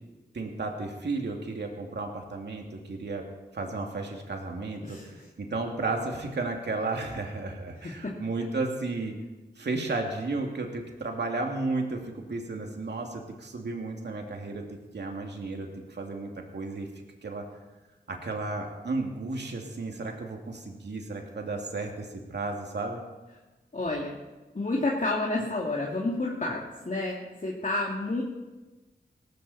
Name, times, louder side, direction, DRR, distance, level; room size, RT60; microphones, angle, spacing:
voice 1, 0.3-3.2 3.5-9.2 9.6-16.9 17.2-17.4 18.1-23.0, right 3 dB, 75° right, 2 dB, 2.6 m, -33 dB
voice 2, 4.8-5.3 7.8-8.1 23.7-24.2 24.5-28.2, left 2 dB, 45° left, -3 dB, 2.7 m, -30 dB
18.5 x 16.0 x 4.3 m, 1.2 s
cardioid pair, 40°, 18 cm